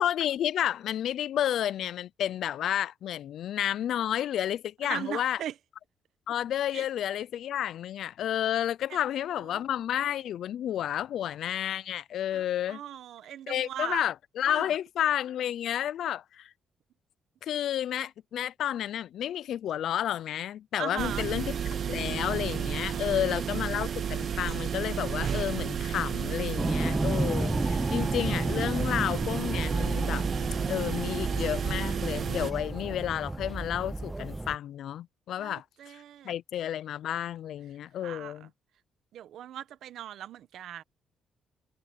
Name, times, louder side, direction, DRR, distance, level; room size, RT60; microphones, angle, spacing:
voice 1, 0.0-5.4 6.3-12.8 13.5-16.5 17.4-21.5 21.9-30.2 30.7-38.5, left 11 dB, 70° left, 0.4 m, -31 dB
voice 2, 4.8-5.5 6.7-6.8 8.9-9.0 9.3-9.6 12.3-14.0 14.5-14.7 20.8-21.3 22.9-23.8 35.4-36.3 38.0-38.5 39.1-40.8, right 11 dB, 75° right, 1.3 m, -40 dB
sound 1, 21.0-32.5, right 8 dB, 55° right, 1.1 m, -32 dB
sound 2, 26.6-34.6, right 2 dB, 15° right, 0.6 m, -32 dB
cardioid pair, 90°, 0 cm